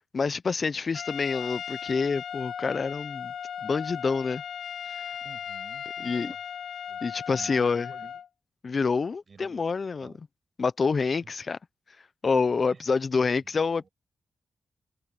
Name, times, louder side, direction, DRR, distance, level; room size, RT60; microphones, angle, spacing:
voice 1, 0.1-3.3 3.6-4.4 4.9-5.0 6.0-6.3 7.0-7.9 8.6-10.1 10.6-11.6 12.2-13.9, left 4 dB, 55° left, 0.8 m, -27 dB
Trumpet, 0.9-8.3, left 8 dB, 80° left, 2.2 m, -37 dB
voice 2, 5.2-6.4 6.9-7.0 7.3-8.2 9.3-9.6 9.9-10.2 11.2-11.3 12.7-12.8 13.4-13.9, right 5 dB, 55° right, 6.7 m, -51 dB
cardioid pair, 50°, 0 cm